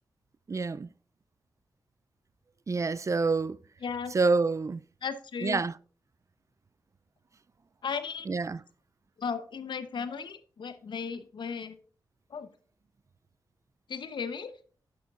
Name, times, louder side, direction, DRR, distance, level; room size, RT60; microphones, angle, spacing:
voice 1, 0.5-0.9 2.7-3.6 4.1-4.8 5.4-5.7 8.3-8.6, right 4 dB, 40° right, 0.4 m, -27 dB
voice 2, 3.8-4.2 5.0-5.6 7.8-8.3 9.2-11.8 12.3-12.5 13.9-14.5, left 6 dB, 75° left, 0.9 m, -35 dB
10.0 x 8.5 x 2.5 m
cardioid pair, 50°, 8 cm